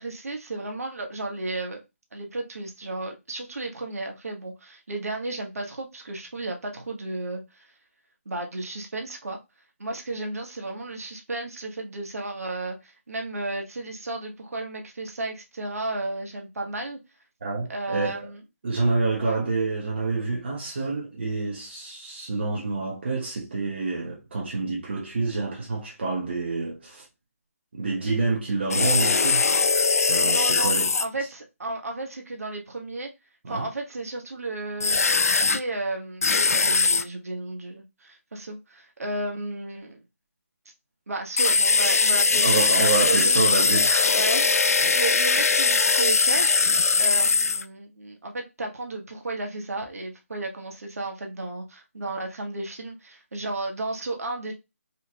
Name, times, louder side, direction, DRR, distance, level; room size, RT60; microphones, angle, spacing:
voice 1, 0.0-1.8 2.1-7.7 8.2-9.4 9.8-17.0 17.7-18.4 19.2-19.4 30.2-30.7 31.0-33.1 33.5-35.0 35.5-40.0 41.1-42.7 43.0-43.5 44.1-46.6 47.0-54.5, right 2 dB, 80° right, 1.3 m, -33 dB
voice 2, 17.4-18.3 18.6-27.0 27.7-29.5 30.0-31.0 33.4-33.7 42.4-44.2 44.8-45.0, right 3 dB, 50° right, 1.2 m, -28 dB
sound 1, 28.7-31.0 34.8-35.6 36.2-37.0 41.4-47.6, left 4 dB, 80° left, 0.4 m, -21 dB
4.4 x 2.9 x 2.3 m
hypercardioid pair, 165°, 8 cm